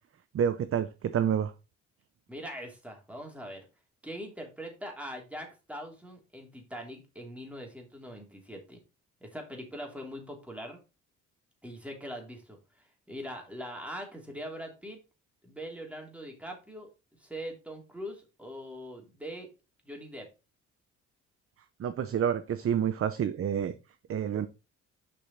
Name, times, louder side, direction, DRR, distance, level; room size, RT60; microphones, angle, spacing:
voice 1, 0.3-1.5 21.8-23.7 24.1-24.5, right 8 dB, 50° right, 11 dB, 0.7 m, -28 dB
voice 2, 2.3-3.6 4.0-8.8 9.2-10.8 11.6-12.6 13.1-15.0 15.4-16.9 17.2-19.5 19.8-20.3, equal, 5° right, 1 dB, 3.1 m, -42 dB
6.9 x 5.5 x 4.2 m, 0.29 s
cardioid pair, 90°, 30 cm